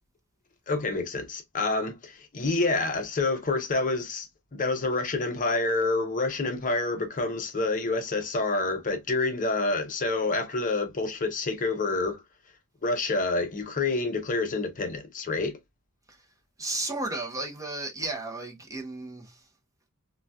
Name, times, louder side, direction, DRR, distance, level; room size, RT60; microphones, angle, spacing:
voice 1, 0.7-12.2 12.8-15.6, left 3 dB, 35° left, 0.6 m, -28 dB
voice 2, 16.6-19.4, right 2 dB, 15° right, 0.6 m, -34 dB
3.9 x 2.2 x 2.2 m
head